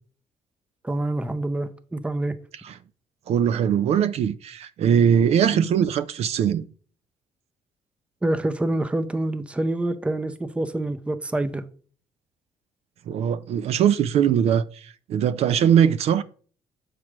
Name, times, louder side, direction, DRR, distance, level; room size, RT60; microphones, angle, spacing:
voice 1, 0.8-2.3 5.5-5.8 8.2-11.6, right 1 dB, 10° right, 0.6 m, -26 dB
voice 2, 3.3-6.7 13.1-16.2, right 8 dB, 65° right, 0.4 m, -21 dB
7.3 x 3.2 x 6.0 m
cardioid pair, 125°, 12 cm